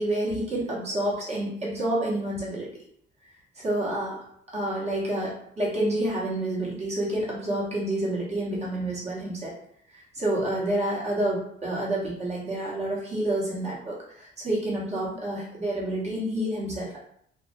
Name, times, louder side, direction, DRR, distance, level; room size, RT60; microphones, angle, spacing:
voice 1, 0.0-2.7 3.5-4.2 4.5-9.5 9.9-17.0, right 1 dB, 35° right, -5 dB, 1.1 m, -29 dB
2.5 x 2.0 x 2.5 m, 0.68 s
cardioid pair, 90°, 20 cm